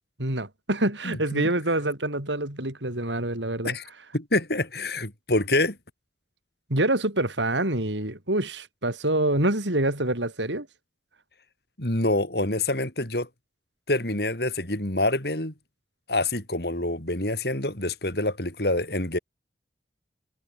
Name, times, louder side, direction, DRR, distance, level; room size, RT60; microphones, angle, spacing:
voice 1, 0.2-3.8 6.7-10.7, right 1 dB, 85° right, 5.6 m, -26 dB
voice 2, 1.0-1.5 3.6-3.9 4.1-5.8 11.8-13.3 13.9-15.5 16.1-19.2, left 2 dB, 60° left, 5.1 m, -26 dB
head